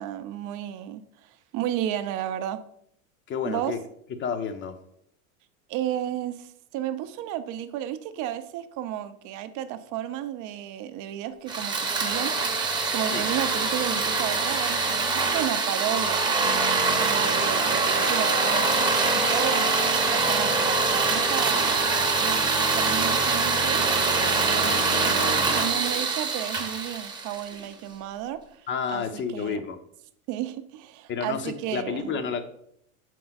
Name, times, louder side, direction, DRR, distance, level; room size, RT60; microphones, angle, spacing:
voice 1, 0.0-2.6 3.5-3.7 5.7-16.2 17.0-19.8 20.1-21.6 22.1-23.8 24.4-29.6 30.3-32.2, right 11 dB, 45° right, 10 dB, 0.7 m, -33 dB
voice 2, 3.3-3.8 4.2-4.8 13.1-13.2 28.7-29.8 31.1-32.4, left 6 dB, 25° left, 9 dB, 0.7 m, -30 dB
sound 1, 11.5-27.7, right 3 dB, 10° right, 0.9 m, -24 dB
6.7 x 4.6 x 4.0 m, 0.71 s
supercardioid pair, 115°, 43 cm